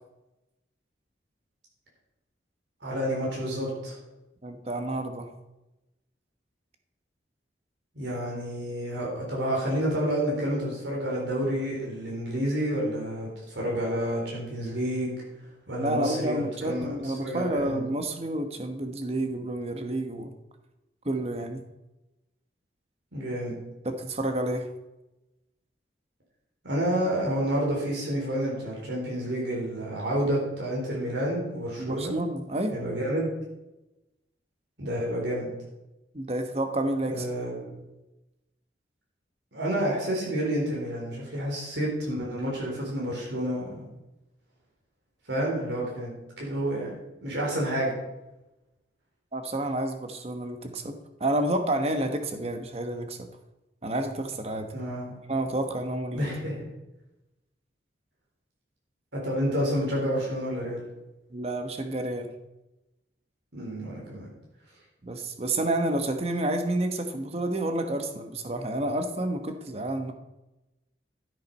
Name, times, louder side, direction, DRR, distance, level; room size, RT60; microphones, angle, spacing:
voice 1, 2.8-4.0 8.0-15.2 15.7-17.8 23.1-23.5 26.6-32.2 32.7-33.3 34.8-35.5 37.1-37.7 39.5-43.8 45.3-46.1 46.4-46.9 47.2-47.9 54.7-55.2 56.1-56.7 59.1-60.9 63.5-64.3, equal, 80° right, -4 dB, 3.9 m, -29 dB
voice 2, 4.4-5.3 15.8-20.3 21.0-21.6 23.8-24.7 31.8-32.7 36.1-37.3 49.3-50.9 51.2-53.2 53.8-54.7 55.3-56.3 61.3-62.3 65.0-70.1, right 1 dB, 35° right, 6 dB, 1.1 m, -29 dB
13.0 x 7.6 x 5.4 m, 0.99 s
head